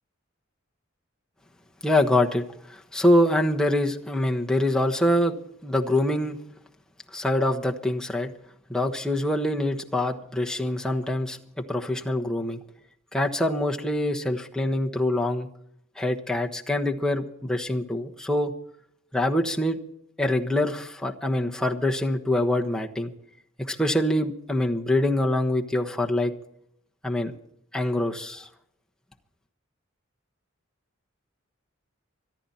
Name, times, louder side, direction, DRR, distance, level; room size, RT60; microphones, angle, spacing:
voice 1, 1.8-2.4 2.7-5.4 5.6-6.4 7.1-8.3 8.7-12.6 13.1-15.5 16.0-18.5 19.1-19.8 20.2-23.1 23.6-26.3 27.0-27.3 27.7-28.5, left 1 dB, 5° left, 1 dB, 1.2 m, -25 dB
25.0 x 10.5 x 4.3 m, 0.73 s
head